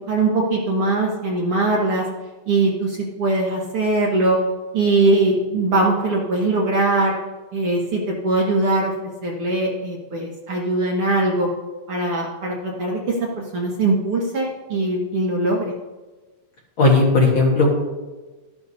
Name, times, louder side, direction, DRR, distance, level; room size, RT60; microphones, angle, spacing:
voice 1, 0.0-2.1 2.5-4.4 4.7-7.2 7.5-11.5 11.9-13.2 13.5-15.7, right 2 dB, 55° right, -2 dB, 1.8 m, -21 dB
voice 2, 16.8-17.8, left 2 dB, 45° left, -3 dB, 2.0 m, -16 dB
13.0 x 11.0 x 2.8 m, 1.2 s
omnidirectional pair, 3.6 m